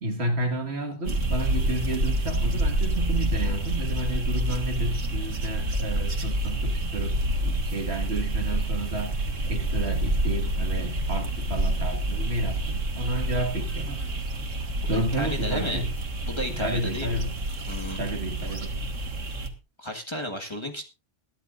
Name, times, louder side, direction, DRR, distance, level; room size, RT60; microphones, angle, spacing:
voice 1, 0.0-9.2 9.5-14.0 14.9-15.9 16.5-17.3 17.9-18.7, right 1 dB, 55° right, 5 dB, 2.1 m, -31 dB
sound 1, 1.1-19.5, right 1 dB, 85° right, 2.1 m, -28 dB
voice 2, 14.9-15.8 16.3-17.2 17.7-18.0 19.8-20.8, equal, 25° left, 2 dB, 1.5 m, -33 dB
21.5 x 11.5 x 2.5 m, 0.29 s
omnidirectional pair, 1.3 m